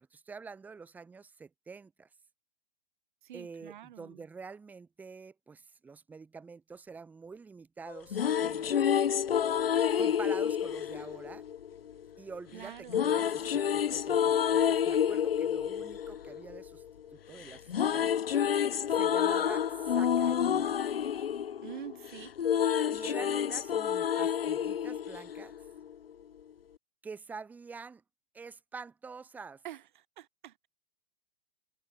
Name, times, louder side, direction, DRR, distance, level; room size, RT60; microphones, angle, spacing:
voice 1, 0.0-2.1 3.3-8.9 10.0-11.4 12.2-13.4 13.7-16.8 17.1-18.1 18.9-20.8 22.9-25.5 27.0-28.0 28.3-29.6, right 5 dB, 5° right, 0.6 m, -46 dB
voice 2, 3.2-4.2 12.5-13.1 21.6-22.3 23.2-23.4 29.6-30.7, right 11 dB, 55° right, 0.9 m, -46 dB
sound 1, 7.9-12.0 12.9-17.1 17.4-25.9, left 9 dB, 75° left, 0.6 m, -29 dB
figure-of-eight pair, 110°, 30 cm